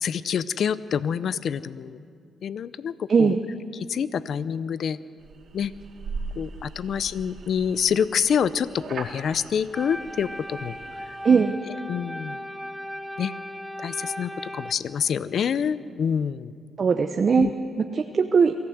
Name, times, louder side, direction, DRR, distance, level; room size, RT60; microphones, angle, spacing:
voice 1, 0.0-2.0 2.4-3.4 3.7-5.0 5.5-5.7 6.4-10.8 11.9-12.4 13.2-13.3 13.8-16.5 17.4-17.5, left 7 dB, 65° left, 16 dB, 0.6 m, -27 dB
voice 2, 3.1-3.4 11.2-11.5 16.8-17.5 17.8-18.5, right 5 dB, 45° right, 6 dB, 0.9 m, -20 dB
sound 1, 5.2-11.3, right 4 dB, 65° right, 2.5 m, -40 dB
sound 2, 9.7-14.7, equal, ahead, 0.7 m, -37 dB
23.5 x 15.0 x 7.9 m, 2.2 s
cardioid pair, 85°, 0 cm